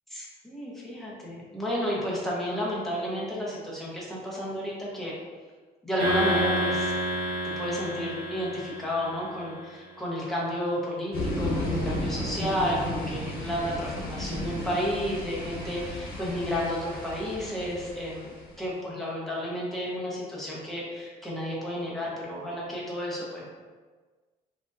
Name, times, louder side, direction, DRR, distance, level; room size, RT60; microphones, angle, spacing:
voice 1, 0.1-5.1 5.8-6.9 7.6-23.4, equal, ahead, -6 dB, 0.9 m, -32 dB
sound 1, 6.0-9.5, right 1 dB, 65° right, 1.2 m, -29 dB
sound 2, 11.1-18.6, left 1 dB, 60° left, 1.0 m, -33 dB
3.5 x 2.6 x 2.5 m, 1.4 s
cardioid pair, 110°, 17 cm